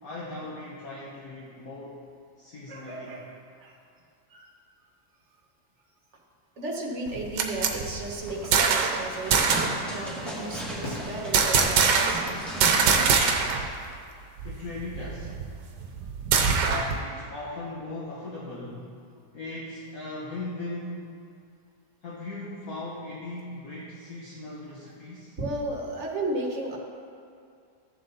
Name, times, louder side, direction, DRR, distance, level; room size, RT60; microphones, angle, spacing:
voice 1, 0.0-2.0 2.4-3.2 14.4-15.4 16.6-18.9 19.3-21.1 22.0-25.4, left 2 dB, 60° left, -5 dB, 1.6 m, -38 dB
voice 2, 2.7-3.3 3.6-3.7 4.3-4.5 6.6-12.4 15.8-15.9 25.4-26.8, right 2 dB, 45° right, 0 dB, 1.6 m, -34 dB
sound 1, 7.1-9.0 9.3-9.8 11.3-12.3 12.6-13.7 14.0-14.1 14.4-17.0, right 5 dB, 80° right, 1.5 m, -23 dB
sound 2, 8.1-13.4, right 1 dB, ahead, 2.4 m, -36 dB
sound 3, 9.3-9.8 10.8-12.3, left 1 dB, 75° left, 2.7 m, -42 dB
14.0 x 7.3 x 4.1 m, 2.4 s
omnidirectional pair, 1.8 m